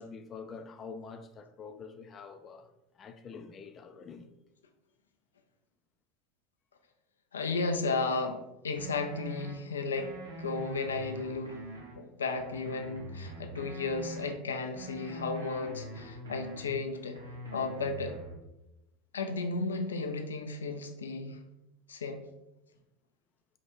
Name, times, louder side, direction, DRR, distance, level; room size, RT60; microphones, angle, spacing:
voice 1, 0.0-4.3, left 5 dB, 35° left, 0.5 m, -46 dB
voice 2, 7.3-10.1 10.4-11.6 11.9-17.2 17.5-18.2 19.1-21.4 21.9-22.2, left 3 dB, 85° left, 0.5 m, -34 dB
sound 1, 8.8-9.5 9.9-12.0 12.3-14.3 14.7-16.8 17.1-18.4, right 1 dB, 80° right, 1.1 m, -43 dB
4.7 x 2.4 x 4.3 m
hypercardioid pair, 80°, 0 cm